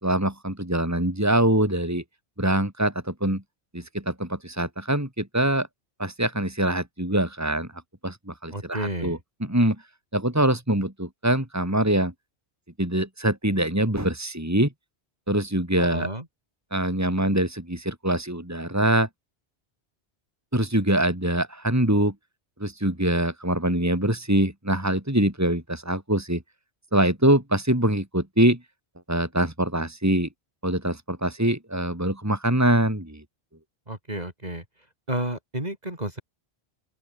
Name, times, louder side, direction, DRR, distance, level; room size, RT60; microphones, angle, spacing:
voice 1, 0.0-2.0 2.4-3.4 3.7-5.7 6.0-7.7 8.0-9.8 10.1-12.1 12.8-14.7 15.3-16.1 16.7-19.1 20.5-22.1 22.6-26.4 26.9-28.6 29.1-30.3 30.6-33.2, right 1 dB, 15° right, 4.0 m, -24 dB
voice 2, 8.5-9.2 15.8-16.3 33.9-34.6 35.1-36.2, right 1 dB, 40° right, 4.6 m, -31 dB
open air
omnidirectional pair, 1.1 m